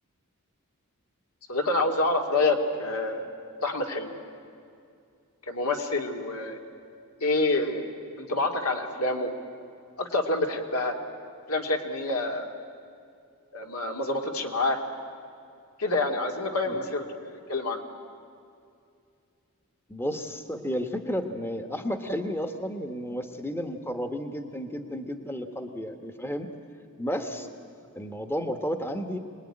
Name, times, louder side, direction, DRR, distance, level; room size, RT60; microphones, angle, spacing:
voice 1, 1.5-3.3 3.6-4.1 5.5-6.6 7.2-7.9 8.2-9.3 10.0-11.0 11.5-12.5 13.5-14.8 15.8-17.8 27.4-27.5, left 2 dB, 75° left, 3 dB, 2.4 m, -27 dB
voice 2, 19.9-26.5 27.0-27.5 27.9-29.2, equal, 10° left, 6 dB, 1.2 m, -32 dB
25.5 x 19.5 x 9.9 m, 2.4 s
head